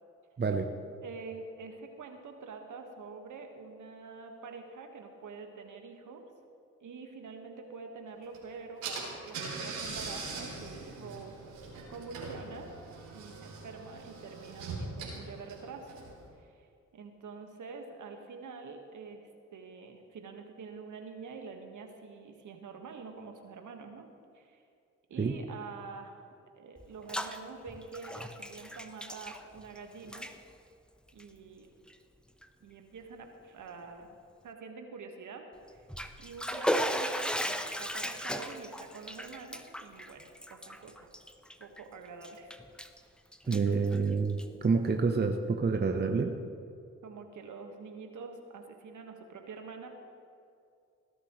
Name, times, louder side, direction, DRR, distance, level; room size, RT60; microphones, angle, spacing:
voice 1, 1.0-6.3 6.8-11.3 11.9-12.7 13.1-16.0 16.4-16.7 16.9-24.1 24.3-24.6 25.1-26.3 26.6-30.3 31.1-31.7 32.6-34.2 34.4-35.4 35.7-35.9 36.2-41.1 41.6-42.6 47.0-49.9, right 4 dB, 60° right, 4 dB, 1.7 m, -46 dB
Car / Engine, 8.3-8.4 8.8-16.3, right 3 dB, 80° right, 3.2 m, -41 dB
Bathtub (filling or washing), 26.8-27.4 27.7-29.8 30.0-30.3 31.1-31.2 31.9-32.0 32.4-32.5 35.7-41.8 42.2-43.0 43.3-44.6, equal, 5° left, 0.9 m, -36 dB
voice 2, 43.5-46.3, right 4 dB, 30° right, 4 dB, 1.0 m, -28 dB
18.5 x 11.5 x 3.2 m, 2.4 s
hypercardioid pair, 45°, 35 cm